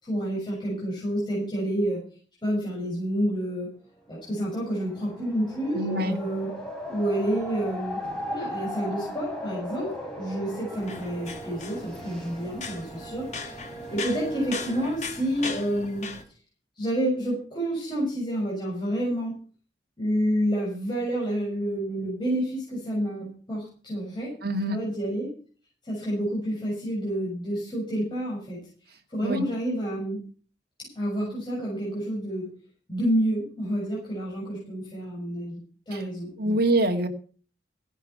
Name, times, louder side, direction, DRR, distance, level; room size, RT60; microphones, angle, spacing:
voice 1, 0.0-2.0 2.4-3.7 4.1-6.5 6.9-8.0 8.3-9.9 10.2-16.1 16.8-19.3 20.0-24.3 24.7-25.3 25.8-28.6 29.1-30.2 30.8-32.5 32.9-35.6 35.9-36.6, equal, 25° left, -5 dB, 6.6 m, -29 dB
sound 1, 4.3-14.9, equal, 5° left, 4.8 m, -37 dB
voice 2, 5.7-6.2 24.4-24.8 29.2-29.4 35.9-36.0 36.4-37.1, right 1 dB, 60° right, 4 dB, 2.1 m, -25 dB
sound 2, 10.8-16.2, left 4 dB, 40° left, 2.0 m, -38 dB
16.5 x 10.5 x 5.7 m, 0.41 s
head